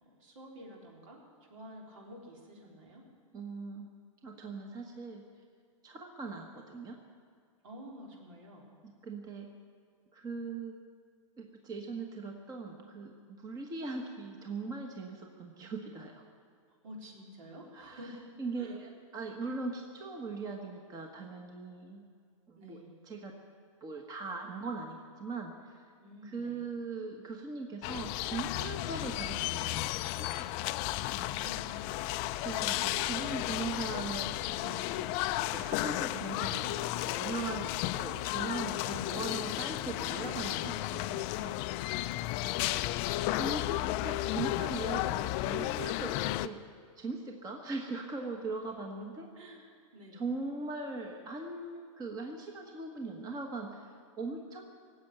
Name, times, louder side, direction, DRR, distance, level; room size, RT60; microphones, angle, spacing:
voice 1, 0.0-3.1 7.6-8.7 16.8-18.2 18.6-18.8 22.5-23.0 26.0-26.6 30.8-32.1 49.3-49.6 49.9-50.2, equal, 70° right, -1 dB, 4.1 m, -50 dB
voice 2, 3.3-3.9 4.2-5.2 5.8-7.0 8.8-9.5 10.1-10.7 11.4-16.2 17.7-18.1 18.4-22.0 22.5-22.8 23.0-23.3 23.8-25.9 26.2-30.4 32.2-41.6 43.3-46.6 47.0-49.3 50.1-54.6, right 3 dB, 20° right, 2 dB, 1.3 m, -40 dB
sound 1, 27.8-46.5, left 16 dB, 40° left, 0.4 m, -33 dB
19.0 x 8.1 x 8.9 m, 2.1 s
hypercardioid pair, 130°, 17 cm